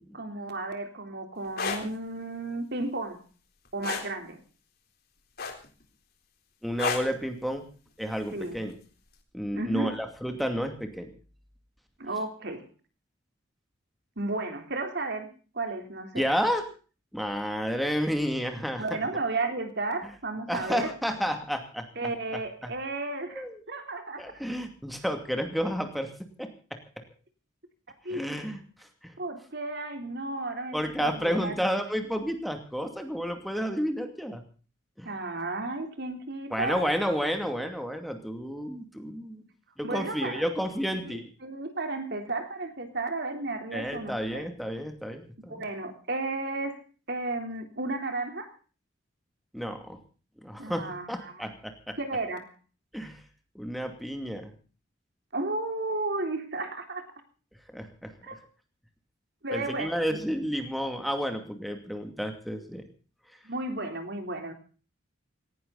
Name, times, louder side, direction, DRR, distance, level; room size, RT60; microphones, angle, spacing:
voice 1, 0.1-3.2 3.7-4.4 8.3-8.6 9.5-9.9 12.0-12.7 14.2-15.3 15.5-16.3 18.8-20.9 22.0-24.3 28.0-28.2 29.2-31.6 35.0-36.9 39.8-40.4 41.0-44.4 45.5-46.8 47.1-48.5 50.6-51.5 52.0-52.5 55.3-57.1 58.2-58.4 59.4-60.2 63.4-64.5, right 2 dB, 60° right, 6 dB, 3.6 m, -33 dB
sound 1, 1.4-1.8 3.8-4.1 5.4-5.8 6.8-7.1 8.5-8.7, left 4 dB, 55° left, 3.8 m, -30 dB
voice 2, 6.6-7.6 8.0-8.7 9.3-11.1 16.1-16.6 17.1-18.8 20.5-21.9 22.6-22.7 23.3-23.6 24.2-26.1 26.4-26.8 28.1-29.1 30.7-34.4 35.0-35.1 36.5-39.4 39.8-41.3 43.7-45.6 49.5-50.0 50.4-52.0 52.9-53.2 53.5-54.5 57.7-58.1 59.5-62.8, equal, ahead, 5 dB, 2.5 m, -31 dB
18.5 x 18.0 x 4.1 m, 0.38 s
head